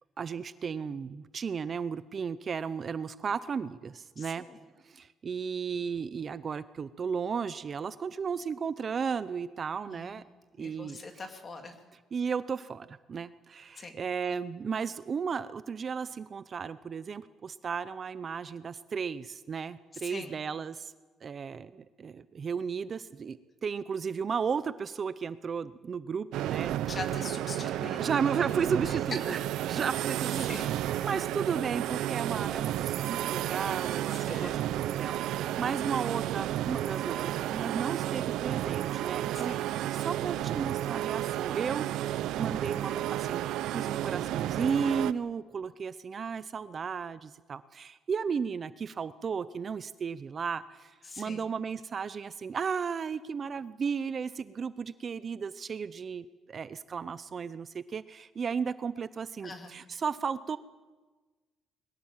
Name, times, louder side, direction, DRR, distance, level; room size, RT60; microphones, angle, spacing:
voice 1, 0.2-4.5 4.8-10.2 10.6-11.0 12.1-20.9 21.2-27.0 27.6-27.7 28.0-29.4 29.6-30.7 31.0-41.9 42.4-43.5 43.7-60.6, right 6 dB, 35° right, 14 dB, 0.6 m, -34 dB
voice 2, 4.2-4.6 9.9-10.2 10.6-11.8 13.8-13.9 19.9-20.3 26.8-28.2 28.9-29.0 30.4-30.7 34.3-34.9 39.3-39.6 51.0-51.4 59.4-59.7, left 3 dB, 30° left, 5 dB, 2.6 m, -42 dB
sound 1, 26.3-45.1, right 13 dB, 80° right, 0.6 m, -32 dB
22.0 x 18.5 x 7.3 m, 1.3 s
cardioid pair, 135°, 0 cm